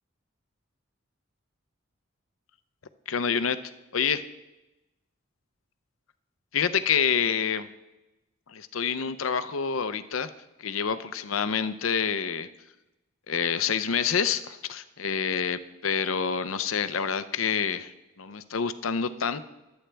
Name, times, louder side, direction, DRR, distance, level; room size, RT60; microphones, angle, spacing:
voice 1, 3.1-3.6 3.9-4.3 6.5-7.7 8.5-10.3 10.6-12.5 13.3-19.4, left 7 dB, 80° left, 12 dB, 0.7 m, -27 dB
22.5 x 8.9 x 3.4 m, 1.0 s
head